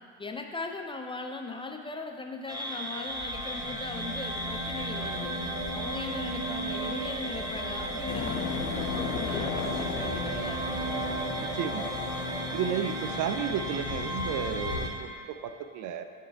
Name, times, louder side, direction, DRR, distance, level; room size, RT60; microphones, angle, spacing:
voice 1, 0.2-10.6, left 3 dB, 15° left, 3 dB, 0.5 m, -39 dB
sound 1, 2.5-14.9, equal, 10° right, 0.9 m, -36 dB
sound 2, 2.5-13.5 14.7-14.8, right 2 dB, 80° right, 1.2 m, -37 dB
sound 3, 8.1-14.9, left 6 dB, 90° left, 0.6 m, -36 dB
voice 2, 11.4-12.0 12.5-16.0, right 8 dB, 50° right, 9 dB, 0.5 m, -33 dB
10.5 x 3.9 x 3.4 m, 2.1 s
hypercardioid pair, 70°, 39 cm